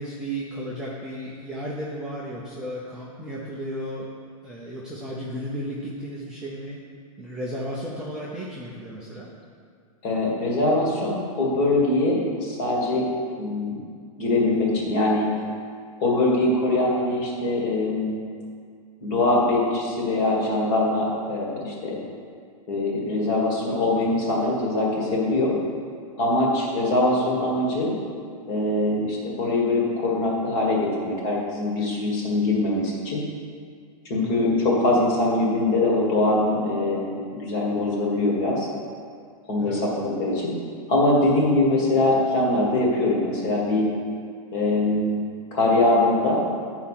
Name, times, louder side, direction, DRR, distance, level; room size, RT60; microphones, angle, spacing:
voice 1, 0.0-4.1 4.4-6.8 7.2-9.3 34.2-34.4 39.6-39.8, equal, 5° right, -8 dB, 0.5 m, -34 dB
voice 2, 10.0-13.1 13.4-13.8 14.2-15.3 16.0-18.2 19.0-22.0 22.7-25.5 26.2-27.9 28.5-33.2 34.1-38.7 39.5-40.5 40.9-43.8 44.5-45.2 45.5-46.4, left 2 dB, 35° left, -2 dB, 1.7 m, -22 dB
8.7 x 4.8 x 5.7 m, 2.1 s
supercardioid pair, 170°, 19 cm